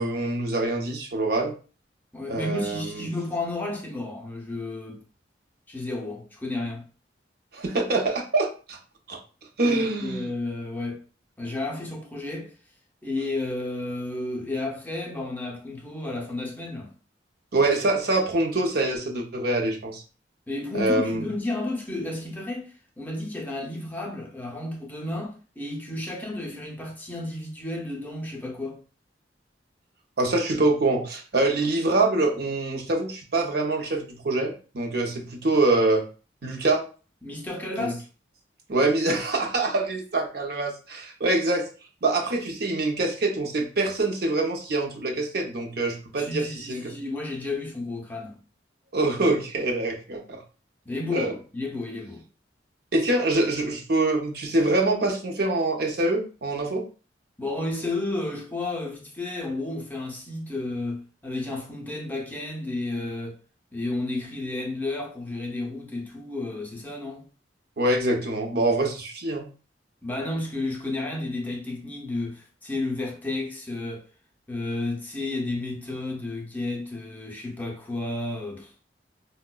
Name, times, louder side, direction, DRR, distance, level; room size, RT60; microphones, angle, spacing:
voice 1, 0.0-1.5 2.3-3.1 7.5-8.8 9.1-9.2 9.6-10.3 17.5-20.0 20.7-21.2 30.2-36.0 36.4-36.8 37.8-37.9 38.7-41.7 42.0-47.0 48.9-50.4 51.1-51.3 52.9-56.8 67.8-69.5, right 2 dB, 60° right, 0.6 m, -25 dB
voice 2, 2.1-5.0 5.7-6.8 9.7-11.0 11.4-12.5 13.0-16.9 20.5-28.8 37.2-38.0 46.2-48.4 50.9-52.2 57.4-63.4 63.7-67.3 70.0-74.0 74.5-78.8, left 2 dB, 10° left, 0.5 m, -32 dB
4.5 x 2.1 x 2.2 m
head